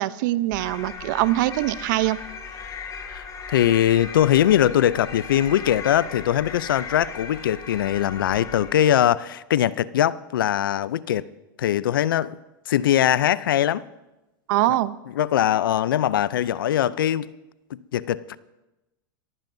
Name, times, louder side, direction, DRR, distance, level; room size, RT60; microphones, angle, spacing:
voice 1, 0.0-2.2 14.5-15.0, right 16 dB, 65° right, 0.7 m, -23 dB
sound 1, 0.5-9.1, left 5 dB, 30° left, 2.8 m, -37 dB
voice 2, 3.1-11.3 11.6-12.4 12.7-13.9 15.2-17.3 17.7-18.4, left 11 dB, 90° left, 0.5 m, -21 dB
23.5 x 14.5 x 2.7 m
hypercardioid pair, 110°, 11 cm